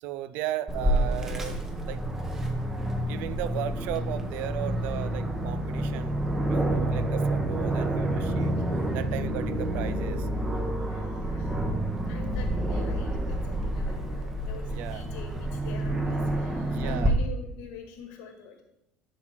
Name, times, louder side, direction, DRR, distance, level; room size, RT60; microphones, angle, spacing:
voice 1, 0.0-1.6 1.8-2.1 3.1-8.5 8.9-10.3 14.6-15.1 16.6-17.1, right 12 dB, 65° right, 0.4 m, -36 dB
Aircraft, 0.7-17.1, right 1 dB, 15° right, 0.9 m, -28 dB
voice 2, 8.4-9.1 10.8-11.7 12.1-18.6, left 5 dB, 80° left, 1.8 m, -45 dB
10.5 x 4.4 x 4.4 m
cardioid pair, 155°, 3 cm